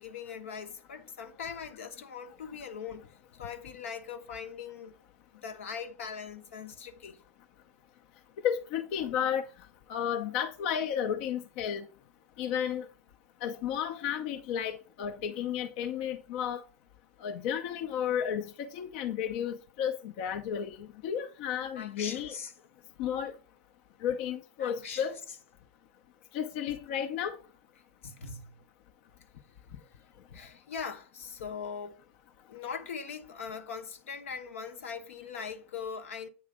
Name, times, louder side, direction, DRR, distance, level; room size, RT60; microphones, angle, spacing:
voice 1, 0.0-4.9 5.3-7.2 21.7-22.5 24.6-25.4 28.0-28.5 30.3-32.0 32.5-36.3, left 6 dB, 75° left, 1.0 m, -41 dB
voice 2, 8.4-9.5 9.9-11.8 12.4-12.9 13.4-16.6 17.2-22.3 23.0-23.3 24.0-25.2 26.3-27.4, left 9 dB, 55° left, 0.7 m, -32 dB
8.7 x 3.2 x 4.9 m
hypercardioid pair, 115°, 7 cm